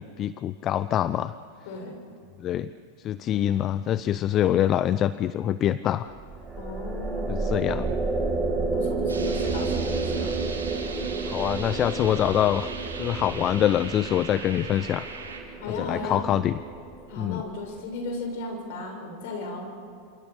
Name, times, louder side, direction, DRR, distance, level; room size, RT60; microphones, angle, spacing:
voice 1, 0.0-1.3 2.4-2.7 3.0-6.1 7.3-7.9 11.3-12.7 13.0-15.0 15.7-16.6 17.2-17.4, left 11 dB, 35° left, 15 dB, 0.7 m, -25 dB
voice 2, 1.6-2.0 6.6-7.7 8.5-10.3 15.6-16.3 17.1-19.7, left 3 dB, 60° left, 3 dB, 6.9 m, -35 dB
sound 1, 6.1-17.5, right 3 dB, 15° right, 4.5 m, -31 dB
sound 2, 9.1-15.4, right 4 dB, 90° right, 4.9 m, -39 dB
27.5 x 27.5 x 6.8 m, 2.5 s
hypercardioid pair, 95°, 0 cm